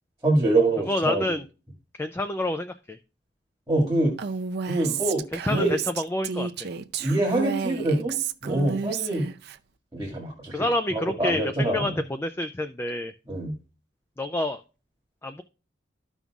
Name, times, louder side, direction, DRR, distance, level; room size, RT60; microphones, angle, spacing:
voice 1, 0.2-1.4 3.7-4.1 4.7-5.2 5.5-5.8 7.0-8.2 8.4-9.3 9.9-10.6 10.9-12.0 13.3-13.5, right 2 dB, 15° right, -1 dB, 2.0 m, -25 dB
voice 2, 0.9-1.4 1.9-3.0 4.8-4.9 5.3-5.7 6.0-6.5 10.5-13.1 14.2-14.6 15.2-15.4, left 1 dB, 10° left, 8 dB, 0.3 m, -28 dB
Female speech woman speaking, 4.2-9.6, right 6 dB, 60° right, 0.5 m, -31 dB
13.5 x 5.3 x 2.4 m, 0.34 s
head